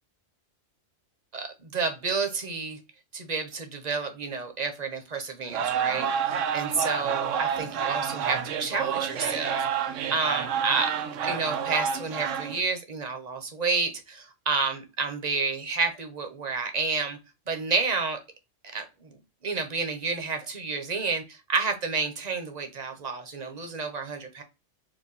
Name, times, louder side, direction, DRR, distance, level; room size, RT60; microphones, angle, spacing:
voice 1, 1.3-2.8 3.1-10.9 11.2-17.2 17.5-18.2 18.7-24.4, right 4 dB, 35° right, 5 dB, 0.9 m, -30 dB
sound 1, 5.5-12.6, right 7 dB, 80° right, 1.0 m, -29 dB
4.8 x 2.2 x 4.0 m, 0.27 s
omnidirectional pair, 1.3 m